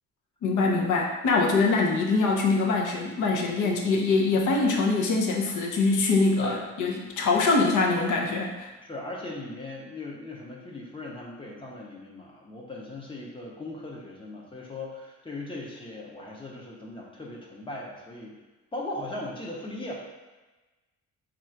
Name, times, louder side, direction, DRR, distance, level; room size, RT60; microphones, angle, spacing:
voice 1, 0.4-8.7, left 3 dB, 75° left, -1 dB, 0.7 m, -24 dB
voice 2, 8.8-18.4 18.7-20.0, left 2 dB, 15° left, -3 dB, 0.6 m, -38 dB
3.8 x 2.4 x 4.4 m, 1.2 s
wide cardioid pair, 170°, 30 cm